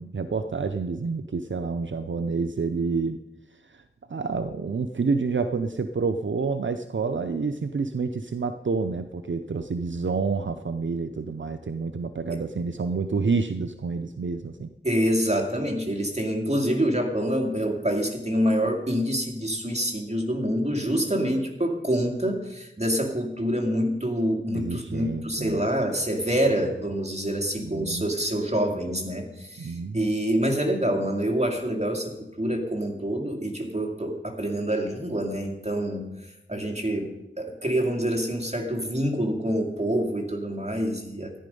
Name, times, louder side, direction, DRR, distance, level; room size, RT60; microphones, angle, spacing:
voice 1, 0.0-3.2 3.5-3.8 4.1-14.7 24.5-25.7 27.6-28.1 29.6-30.1, right 4 dB, 70° right, 8 dB, 0.6 m, -28 dB
voice 2, 14.8-36.1 36.5-41.4, equal, 35° right, 3 dB, 2.2 m, -26 dB
14.0 x 10.0 x 5.3 m, 0.94 s
wide cardioid pair, 50°, 20 cm